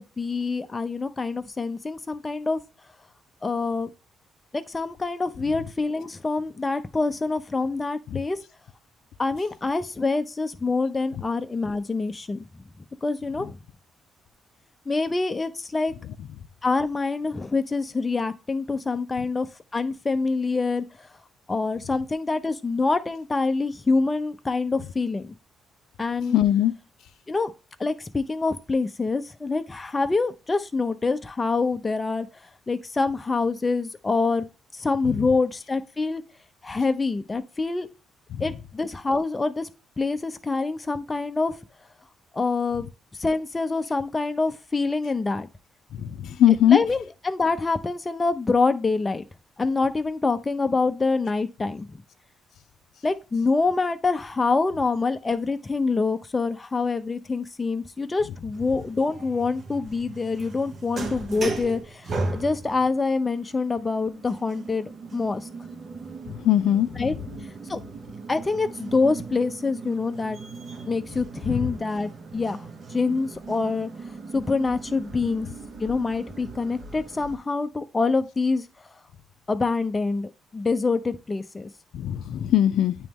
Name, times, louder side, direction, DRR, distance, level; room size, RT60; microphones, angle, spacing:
voice 1, 0.0-2.6 3.4-3.9 4.5-8.4 9.2-12.6 13.0-13.6 14.9-15.9 16.6-19.5 19.7-21.1 21.5-25.4 26.0-26.4 27.3-27.5 27.8-32.3 32.7-36.2 36.6-37.9 38.4-39.7 40.0-41.5 42.3-42.9 43.2-45.5 46.5-49.2 49.6-52.0 53.0-65.5 67.0-67.1 67.7-67.8 68.3-70.4 70.9-73.9 74.3-75.5 75.8-78.6 79.5-81.7, left 3 dB, 25° left, 0.6 m, -26 dB
voice 2, 26.3-26.7 38.3-38.4 46.0-46.1 46.4-46.8 66.4-66.9 71.5-71.6 81.9-83.0, left 11 dB, 75° left, 0.4 m, -19 dB
sound 1, 58.5-77.4, right 3 dB, 50° right, 1.3 m, -38 dB
9.0 x 3.1 x 3.5 m
cardioid pair, 90°, 0 cm